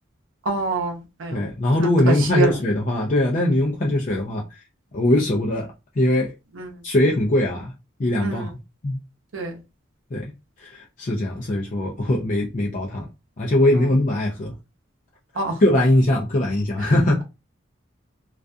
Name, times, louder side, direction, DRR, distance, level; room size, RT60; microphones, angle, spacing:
voice 1, 0.5-1.4 2.3-2.5 6.6-6.7 8.2-8.5 9.3-9.5 15.4-15.6, right 3 dB, 85° right, 0.7 m, -25 dB
voice 2, 1.3-4.4 4.9-5.7 6.0-6.3 6.8-7.7 8.0-8.5 8.8-9.0 10.1-10.3 10.6-13.1 13.4-14.5 15.3-17.2, left 1 dB, 40° left, 0.4 m, -21 dB
2.3 x 2.2 x 2.5 m
head